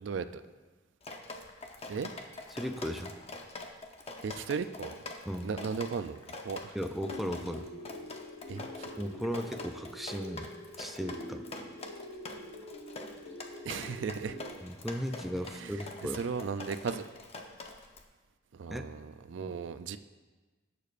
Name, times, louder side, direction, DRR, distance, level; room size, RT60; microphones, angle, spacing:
voice 1, 0.0-0.4 1.9-2.1 4.2-5.0 5.4-6.8 8.5-8.9 13.6-14.4 15.5-17.1 18.5-20.0, right 5 dB, 65° right, 11 dB, 0.4 m, -36 dB
Drip, 1.0-18.0, left 2 dB, 30° left, 0.8 m, -45 dB
voice 2, 2.5-3.1 5.3-5.5 6.7-7.7 9.0-10.5 10.8-11.5 14.6-16.2 18.7-18.8 19.4-19.6, equal, ahead, 5 dB, 0.3 m, -36 dB
sound 1, 7.0-14.5, left 1 dB, 70° left, 2.3 m, -45 dB
18.0 x 6.8 x 2.5 m, 1.3 s
head